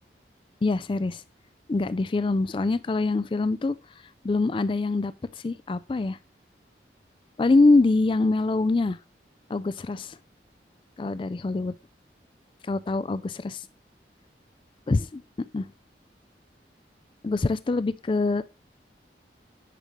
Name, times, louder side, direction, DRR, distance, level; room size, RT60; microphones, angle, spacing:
voice 1, 0.6-1.2 1.7-3.8 4.2-5.1 5.4-6.2 7.4-9.0 9.5-10.2 11.0-11.7 12.7-13.6 14.9-15.2 15.5-15.6 17.2-18.4, left 3 dB, 30° left, 0.3 m, -24 dB
10.0 x 5.2 x 3.1 m
head